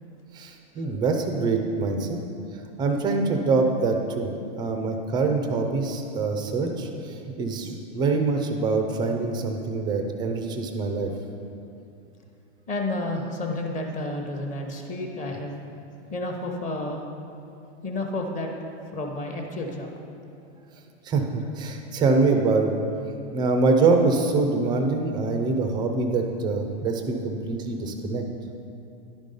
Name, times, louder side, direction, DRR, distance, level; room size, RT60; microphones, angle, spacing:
voice 1, 0.3-2.2 2.8-11.1 21.0-22.7 23.3-28.2, right 3 dB, 15° right, 4 dB, 0.4 m, -24 dB
voice 2, 12.7-15.5 16.1-17.0 17.8-18.5 18.9-19.9, left 2 dB, 20° left, 2 dB, 0.9 m, -30 dB
10.5 x 5.3 x 5.2 m, 2.6 s
supercardioid pair, 145°, 35 cm